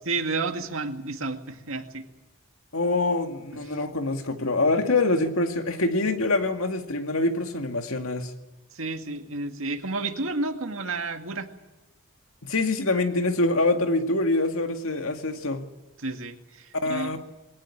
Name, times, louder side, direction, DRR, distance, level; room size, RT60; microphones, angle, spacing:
voice 1, 0.1-2.1 3.5-3.6 8.7-11.5 16.0-17.1, right 3 dB, 75° right, 5 dB, 2.0 m, -31 dB
voice 2, 2.7-8.3 12.4-15.6 16.8-17.2, left 2 dB, 90° left, 5 dB, 2.1 m, -25 dB
22.0 x 17.5 x 9.9 m, 1.1 s
head